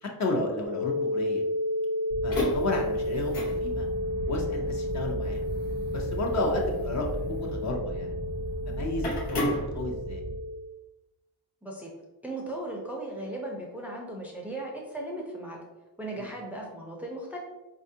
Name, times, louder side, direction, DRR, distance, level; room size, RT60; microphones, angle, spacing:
voice 1, 0.0-1.4 2.2-3.8 4.3-5.4 5.9-8.1 8.7-10.2 16.2-16.3, left 1 dB, 45° left, 0 dB, 0.7 m, -32 dB
sound 1, 0.6-10.6, left 1 dB, 75° right, 0.7 m, -32 dB
sound 2, 2.1-10.4, equal, 90° left, 1.0 m, -34 dB
voice 2, 11.6-11.9 12.2-15.6 16.0-17.4, right 1 dB, 5° right, -2 dB, 0.5 m, -37 dB
4.2 x 2.4 x 2.7 m, 1.1 s
cardioid pair, 100°, 40 cm